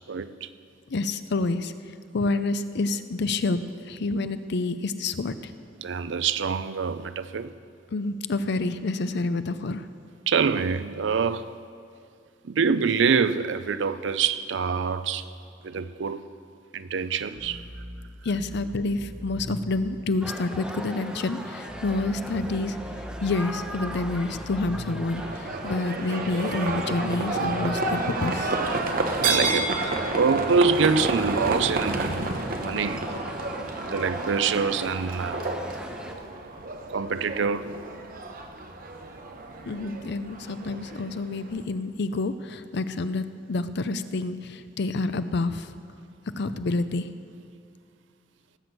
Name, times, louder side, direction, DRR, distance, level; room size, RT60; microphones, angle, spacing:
voice 1, 0.1-0.5 5.8-7.5 10.3-11.5 12.4-15.3 15.6-16.2 16.7-17.7 29.2-29.8 30.2-33.1 33.8-35.4 36.9-37.8, right 5 dB, 70° right, 0.5 m, -25 dB
voice 2, 0.9-1.7 2.1-3.6 3.9-5.5 7.9-9.9 18.2-22.8 23.2-28.6 39.7-45.7 46.4-47.1, left 3 dB, 65° left, 0.6 m, -28 dB
sound 1, 17.3-19.9 21.7-25.3 26.3-28.0, equal, 20° right, 1.7 m, -40 dB
sound 2, 20.2-36.1, equal, 5° right, 0.9 m, -39 dB
Livestock farm animals working animals, 25.2-41.6, right 2 dB, 50° right, 1.0 m, -30 dB
17.5 x 6.1 x 8.0 m
head